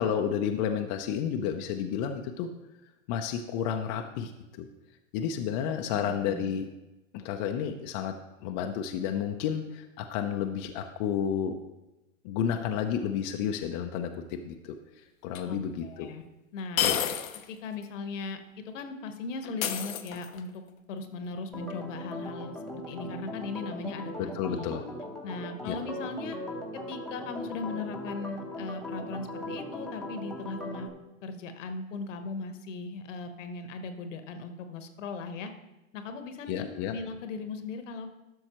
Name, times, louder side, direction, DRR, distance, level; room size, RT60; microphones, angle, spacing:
voice 1, 0.0-2.5 3.1-4.7 5.1-6.6 7.1-8.1 8.4-11.6 12.2-14.7 15.2-16.1 16.8-17.2 24.3-24.8 25.7-25.8 36.5-36.9, left 8 dB, 35° left, 4 dB, 0.5 m, -31 dB
voice 2, 5.9-6.5 15.5-16.2 16.5-16.9 17.5-18.4 18.6-20.6 20.9-24.7 25.2-26.4 26.7-30.9 31.2-35.5 35.9-38.1, left 4 dB, 65° left, 8 dB, 1.1 m, -38 dB
sound 1, 15.3-15.4 16.8-17.5 17.8-17.9 19.6-20.5, left 10 dB, 85° left, 0.8 m, -29 dB
Organ, 21.5-30.9, left 1 dB, ahead, 0.9 m, -39 dB
12.5 x 6.2 x 3.0 m, 1.0 s
hypercardioid pair, 125°, 40 cm